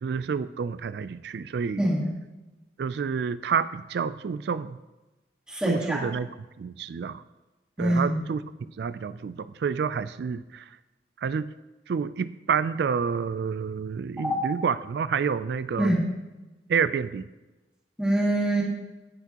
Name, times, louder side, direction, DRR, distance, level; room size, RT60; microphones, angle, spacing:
voice 1, 0.0-1.8 2.8-4.8 5.7-6.3 6.6-7.2 7.8-8.4 8.8-10.6 11.2-11.5 11.9-16.0 16.7-17.3, right 6 dB, 70° right, 15 dB, 0.3 m, -29 dB
voice 2, 1.8-2.1 5.5-6.0 7.8-8.2 14.2-14.4 15.8-16.0 18.0-18.6, right 1 dB, 5° right, -5 dB, 1.6 m, -24 dB
17.5 x 5.9 x 2.9 m, 1.1 s
head